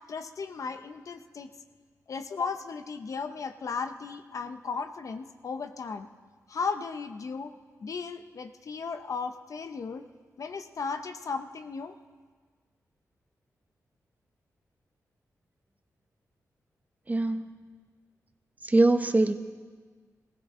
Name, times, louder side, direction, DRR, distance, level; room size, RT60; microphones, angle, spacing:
voice 1, 0.1-1.5 2.1-6.1 6.5-7.5 7.8-10.0 10.4-11.9, left 5 dB, 60° left, 9 dB, 0.7 m, -35 dB
voice 2, 17.1-17.5 18.6-19.3, right 2 dB, 25° right, 9 dB, 0.9 m, -22 dB
18.5 x 16.0 x 3.7 m, 1.5 s
cardioid pair, 70°, 6 cm